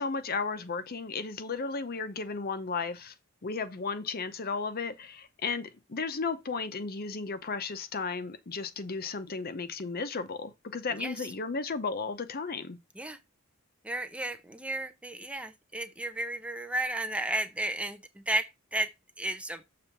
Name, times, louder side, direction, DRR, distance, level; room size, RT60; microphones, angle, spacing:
voice 1, 0.0-3.1 3.4-12.8, left 4 dB, 45° left, 0.7 m, -34 dB
voice 2, 13.8-19.6, right 1 dB, 5° right, 0.6 m, -33 dB
6.9 x 3.4 x 5.9 m
head